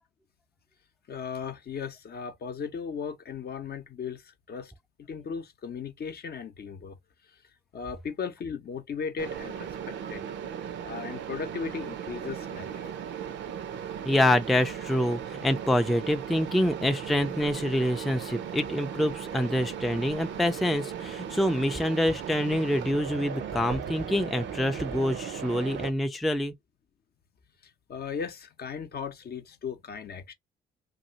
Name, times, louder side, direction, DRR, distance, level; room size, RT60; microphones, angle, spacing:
voice 1, 1.1-4.7 5.0-7.0 7.7-10.2 10.8-13.0 27.9-30.3, left 6 dB, 50° left, 0.7 m, -37 dB
Mechanisms, 9.2-25.9, right 8 dB, 65° right, 0.5 m, -37 dB
voice 2, 14.1-26.5, left 1 dB, ahead, 0.3 m, -26 dB
2.6 x 2.4 x 2.7 m
supercardioid pair, 55°, 21 cm